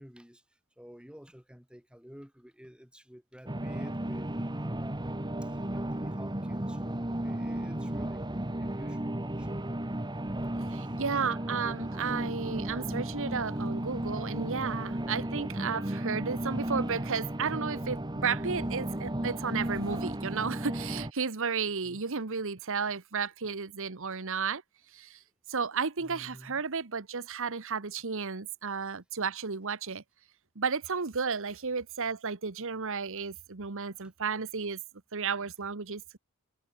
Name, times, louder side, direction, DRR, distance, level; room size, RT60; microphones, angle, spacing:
voice 1, 0.0-9.6 10.7-11.0 14.0-14.3 21.8-22.0 26.0-26.6, equal, 5° right, 6.7 m, -52 dB
sound 1, 3.5-21.1, right 1 dB, 20° right, 1.7 m, -34 dB
voice 2, 10.7-24.6 24.9-25.2 25.5-30.0 30.5-34.8 35.1-36.2, right 5 dB, 65° right, 1.2 m, -33 dB
head